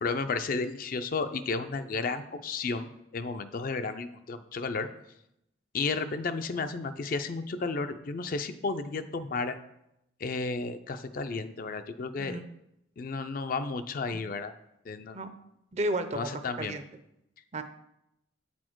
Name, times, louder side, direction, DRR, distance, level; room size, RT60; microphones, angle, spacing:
voice 1, 0.0-4.9 5.7-9.6 10.2-12.4 13.0-14.5 14.9-15.2 16.1-16.8, left 4 dB, 45° left, 10 dB, 0.4 m, -33 dB
voice 2, 15.7-16.8 17.5-17.6, right 1 dB, 35° right, 9 dB, 0.5 m, -33 dB
8.2 x 4.3 x 4.5 m, 0.82 s
head